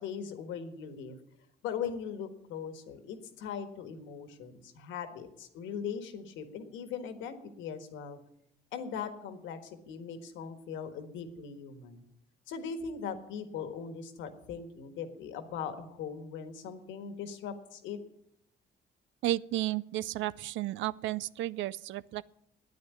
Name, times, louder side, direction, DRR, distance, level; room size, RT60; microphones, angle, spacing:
voice 1, 0.0-1.2 1.6-8.2 8.7-12.0 12.5-18.0, left 7 dB, 85° left, 8 dB, 1.6 m, -40 dB
voice 2, 19.2-22.2, right 15 dB, 80° right, 20 dB, 0.5 m, -33 dB
9.4 x 9.4 x 9.7 m, 0.78 s
supercardioid pair, 70°, 19 cm